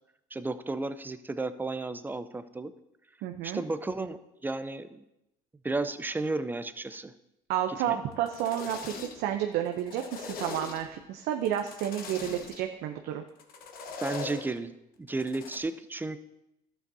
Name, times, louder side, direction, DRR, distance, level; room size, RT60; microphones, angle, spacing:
voice 1, 0.3-2.7 3.4-5.0 5.6-7.1 7.9-8.0 14.0-14.7 15.0-16.2, right 3 dB, 10° right, 12 dB, 0.5 m, -33 dB
voice 2, 3.2-3.6 7.5-13.2, right 10 dB, 65° right, 5 dB, 0.6 m, -31 dB
sound 1, 8.1-9.4 9.6-11.0 11.4-12.6 13.4-14.5 15.1-15.6, left 4 dB, 50° left, 1.1 m, -41 dB
11.5 x 7.9 x 2.7 m, 0.87 s
supercardioid pair, 100°, 18 cm